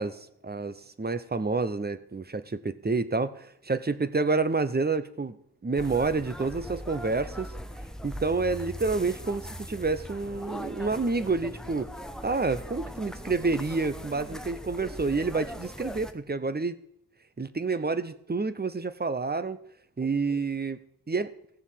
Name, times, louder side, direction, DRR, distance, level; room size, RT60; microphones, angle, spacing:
voice 1, 0.0-5.4 5.6-7.5 8.0-9.4 9.7-11.9 12.2-16.8 17.4-19.6 20.0-20.8 21.1-21.3, right 3 dB, 25° right, 13 dB, 0.8 m, -28 dB
sound 1, 5.7-16.1, equal, ahead, 0.9 m, -40 dB
16.5 x 7.1 x 7.5 m, 0.72 s
wide cardioid pair, 110°, 39 cm